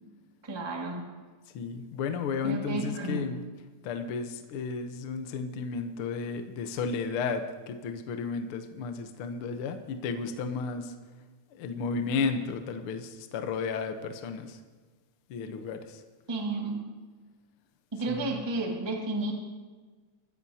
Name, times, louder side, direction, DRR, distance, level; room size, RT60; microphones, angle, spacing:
voice 1, 0.4-1.0 2.4-3.3 16.3-16.8 17.9-19.3, right 2 dB, 10° right, 0 dB, 1.2 m, -32 dB
voice 2, 1.5-3.4 3.8-10.9 11.5-14.6 15.3-16.0 18.1-18.3, left 5 dB, 70° left, 6 dB, 1.3 m, -33 dB
23.5 x 14.5 x 2.8 m, 1.4 s
omnidirectional pair, 3.5 m